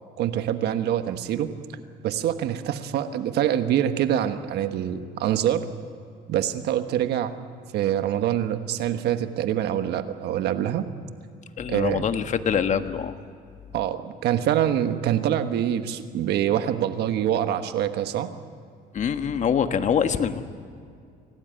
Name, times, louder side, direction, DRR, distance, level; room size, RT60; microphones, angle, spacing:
voice 1, 0.2-1.5 2.0-5.7 6.3-7.3 7.7-10.9 11.7-12.0 13.7-18.3, right 10 dB, 75° right, 9 dB, 1.4 m, -25 dB
voice 2, 11.6-13.1 18.9-20.4, left 7 dB, 45° left, 8 dB, 1.4 m, -24 dB
26.0 x 18.0 x 9.2 m, 2.3 s
cardioid pair, 110°, 17 cm